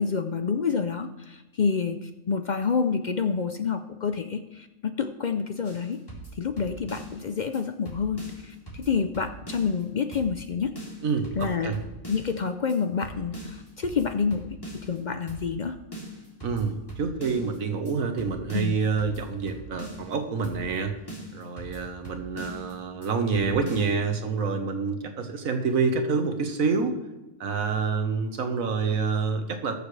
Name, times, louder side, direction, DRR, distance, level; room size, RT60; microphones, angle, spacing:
voice 1, 0.0-6.0 6.3-10.7 11.4-11.8 12.1-14.4 14.8-15.7 18.5-18.8, left 5 dB, 60° left, 8 dB, 0.5 m, -28 dB
sound 1, 5.6-7.2 7.5-7.6 7.9-9.8 10.1-10.5 10.8-12.4 12.7-12.8 13.0-15.0 15.3-15.6 15.9-17.6 17.9-18.0 18.2-20.1 20.4-20.8 21.1-22.7 23.0-23.1 23.3-23.9, right 2 dB, 15° left, 3.2 m, -41 dB
voice 2, 11.0-11.8 16.4-21.0 21.3-27.0 27.4-29.7, right 5 dB, 85° right, 6 dB, 1.6 m, -27 dB
20.0 x 6.9 x 3.3 m, 1.0 s
omnidirectional pair, 1.4 m